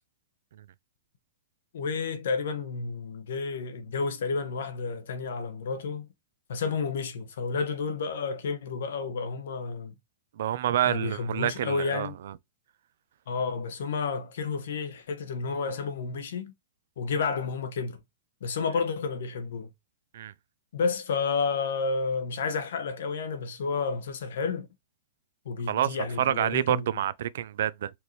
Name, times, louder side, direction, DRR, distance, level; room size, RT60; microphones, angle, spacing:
voice 1, 1.7-6.1 6.5-9.9 10.8-12.2 13.3-16.5 17.0-18.0 18.4-19.7 20.7-24.7 25.4-27.0, left 5 dB, 75° left, 0.9 m, -31 dB
voice 2, 10.4-12.3 20.1-20.3 25.7-27.9, right 11 dB, 70° right, 0.3 m, -28 dB
4.4 x 2.6 x 3.1 m
hypercardioid pair, 120°, 0 cm